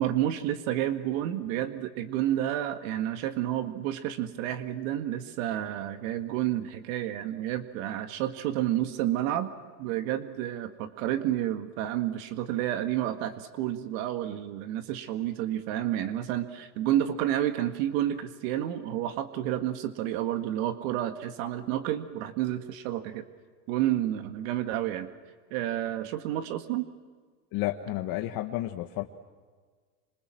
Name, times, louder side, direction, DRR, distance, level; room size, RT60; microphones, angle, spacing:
voice 1, 0.0-9.5 9.8-23.2 23.7-25.1 25.5-26.9, right 12 dB, 60° right, 9 dB, 1.9 m, -30 dB
voice 2, 27.5-29.0, left 15 dB, 50° left, 4 dB, 1.6 m, -31 dB
27.0 x 26.0 x 7.6 m, 1.5 s
supercardioid pair, 115°, 44 cm